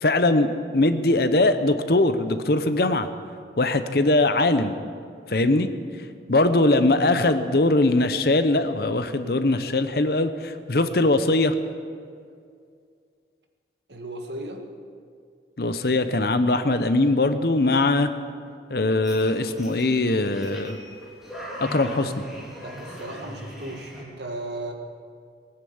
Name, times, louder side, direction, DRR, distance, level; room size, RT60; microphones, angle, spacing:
voice 1, 0.0-3.1 3.6-4.7 5.3-5.7 6.3-11.5 15.6-18.1 18.7-20.8 21.6-22.1, left 2 dB, 55° left, 10 dB, 0.8 m, -21 dB
voice 2, 13.9-14.6 22.6-24.7, right 1 dB, 70° right, 3 dB, 1.7 m, -35 dB
sound 1, 19.0-24.0, equal, ahead, 3.2 m, -39 dB
19.0 x 9.8 x 7.2 m, 2.2 s
head